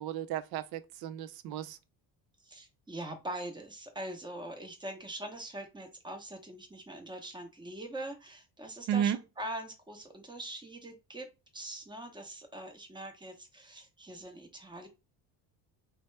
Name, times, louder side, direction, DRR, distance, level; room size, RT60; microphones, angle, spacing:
voice 1, 0.0-1.8 8.9-9.2, right 9 dB, 55° right, 0.5 m, -33 dB
voice 2, 2.4-11.3 11.5-14.9, right 1 dB, 10° right, 0.9 m, -43 dB
2.9 x 2.2 x 3.2 m
supercardioid pair, 85°, 44 cm